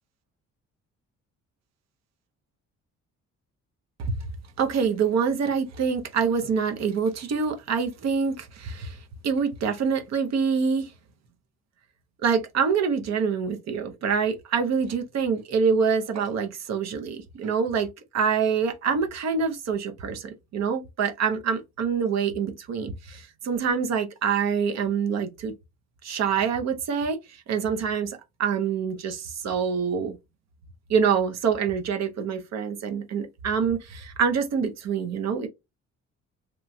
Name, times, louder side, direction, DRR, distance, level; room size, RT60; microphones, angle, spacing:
voice 1, 4.6-9.0 9.2-10.9 12.2-25.5 26.0-27.2 27.5-30.2 30.9-35.5, right 6 dB, 60° right, 0.6 m, -26 dB
3.0 x 2.2 x 2.6 m
cardioid pair, 90°, 30 cm